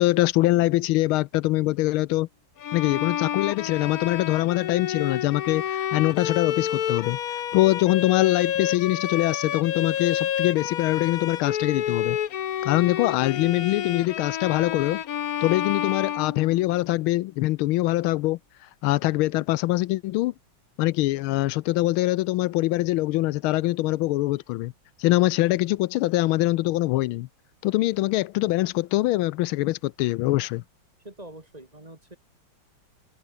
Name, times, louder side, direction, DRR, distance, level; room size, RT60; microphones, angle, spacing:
voice 1, 0.0-2.3 2.7-7.2 7.5-12.2 12.6-15.0 15.4-18.4 18.8-20.3 20.8-24.7 25.0-27.3 27.6-30.6, left 18 dB, 85° left, 1.4 m, -23 dB
Bowed string instrument, 2.6-16.9, left 10 dB, 55° left, 1.2 m, -29 dB
voice 2, 31.0-32.2, right 1 dB, 20° right, 2.3 m, -44 dB
omnidirectional pair, 2.3 m